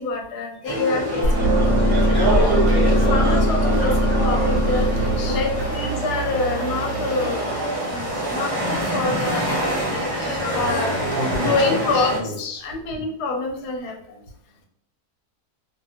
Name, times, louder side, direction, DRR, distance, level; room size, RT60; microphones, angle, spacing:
voice 1, 0.0-2.8 3.1-7.4 7.9-10.9 11.3-12.3 12.6-14.2, left 3 dB, 90° left, 2 dB, 1.2 m, -27 dB
sound 1, 0.6-12.2, right 1 dB, 25° right, 0.5 m, -26 dB
sound 2, 1.2-7.3, right 1 dB, 55° right, 0.9 m, -21 dB
voice 2, 4.9-5.4 11.2-11.8 12.2-12.6 13.0-13.1, left 1 dB, 60° left, 1 dB, 0.8 m, -30 dB
2.7 x 2.6 x 2.7 m, 0.71 s
omnidirectional pair, 1.7 m